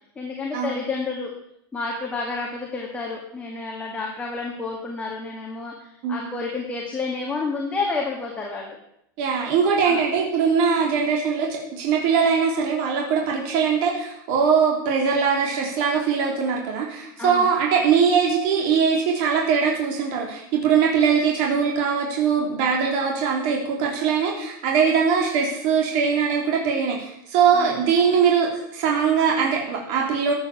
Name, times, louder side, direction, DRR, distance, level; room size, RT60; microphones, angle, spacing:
voice 1, 0.2-1.3 1.7-8.8 9.8-10.0 17.2-17.5 27.5-27.8, left 3 dB, 10° left, -2 dB, 2.1 m, -30 dB
voice 2, 9.2-30.3, right 6 dB, 50° right, -1 dB, 3.3 m, -21 dB
14.0 x 8.9 x 7.1 m, 0.76 s
supercardioid pair, 155°, 11 cm